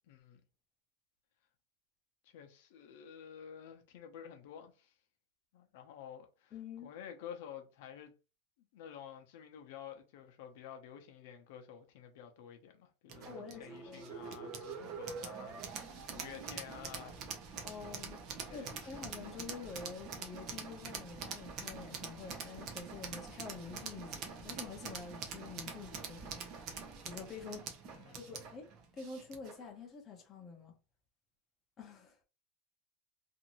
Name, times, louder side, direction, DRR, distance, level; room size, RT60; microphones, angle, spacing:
voice 1, 0.1-0.4 2.2-4.9 5.5-6.5 6.8-8.1 8.7-17.7 18.5-19.0 27.8-28.4, left 8 dB, 60° left, 0.6 m, -51 dB
voice 2, 6.5-6.9 13.3-14.0 17.6-18.2 18.5-26.4 27.0-27.7 28.2-28.7 28.9-30.7 31.8-32.2, left 5 dB, 20° left, 0.6 m, -47 dB
sound 1, 13.1-29.6, right 5 dB, 35° right, 0.6 m, -45 dB
2.6 x 2.5 x 2.9 m
supercardioid pair, 175°, 0 cm